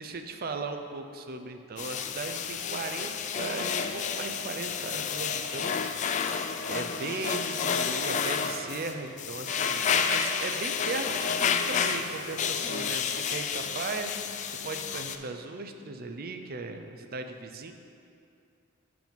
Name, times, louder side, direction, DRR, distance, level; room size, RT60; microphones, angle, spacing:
voice 1, 0.0-14.1 14.5-17.7, right 3 dB, 45° right, 6 dB, 0.5 m, -37 dB
sound 1, 1.8-15.2, left 6 dB, 35° left, 0.3 m, -30 dB
7.7 x 4.8 x 5.2 m, 2.4 s
head